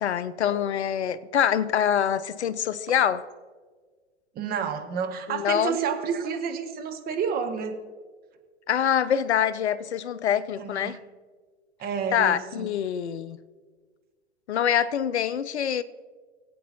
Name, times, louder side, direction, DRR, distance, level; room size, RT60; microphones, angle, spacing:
voice 1, 0.0-3.2 5.3-5.8 8.7-11.0 12.1-13.4 14.5-15.8, left 9 dB, 70° left, 0.6 m, -25 dB
voice 2, 4.3-7.8 10.6-11.0 11.8-12.7, right 6 dB, 25° right, 1.0 m, -30 dB
20.0 x 8.5 x 2.9 m
figure-of-eight pair, 95°, 35 cm